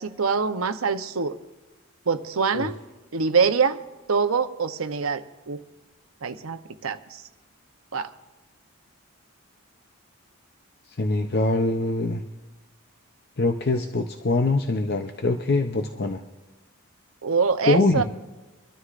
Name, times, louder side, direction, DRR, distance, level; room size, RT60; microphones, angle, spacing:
voice 1, 0.0-1.4 2.1-2.8 3.1-3.8 4.1-5.6 6.2-7.2 7.9-8.1 17.2-18.0, right 5 dB, 85° right, 9 dB, 0.8 m, -24 dB
voice 2, 10.9-12.2 13.4-16.2 17.7-18.0, left 2 dB, 50° left, 6 dB, 0.6 m, -23 dB
24.5 x 13.0 x 2.5 m, 1.2 s
head